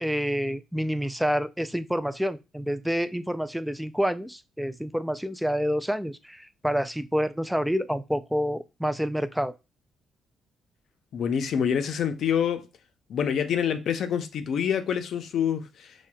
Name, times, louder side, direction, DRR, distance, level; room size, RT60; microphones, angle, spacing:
voice 1, 0.0-9.5, equal, ahead, 0.3 m, -28 dB
voice 2, 11.1-12.7 13.1-15.9, left 8 dB, 65° left, 0.5 m, -26 dB
6.0 x 2.2 x 2.2 m
cardioid pair, 90°, 0 cm